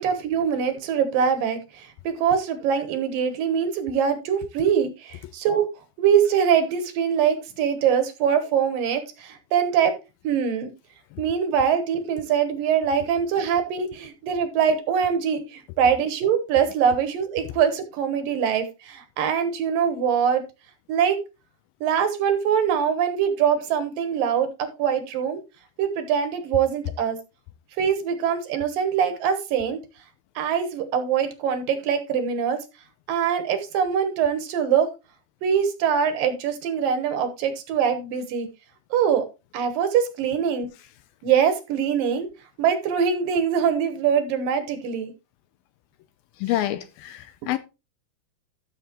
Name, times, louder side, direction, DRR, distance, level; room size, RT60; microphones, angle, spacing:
voice 1, 0.0-5.7 6.0-9.9 10.2-10.7 11.2-20.4 20.9-21.2 21.8-25.4 25.8-27.2 27.8-29.8 30.4-32.6 33.1-34.9 35.4-38.5 38.9-39.2 39.5-40.7 41.2-42.3 42.6-45.1 47.4-47.5, right 7 dB, 70° right, 2.6 m, -23 dB
voice 2, 46.4-47.6, left 13 dB, 80° left, 2.3 m, -27 dB
14.0 x 6.7 x 3.0 m
omnidirectional pair, 4.6 m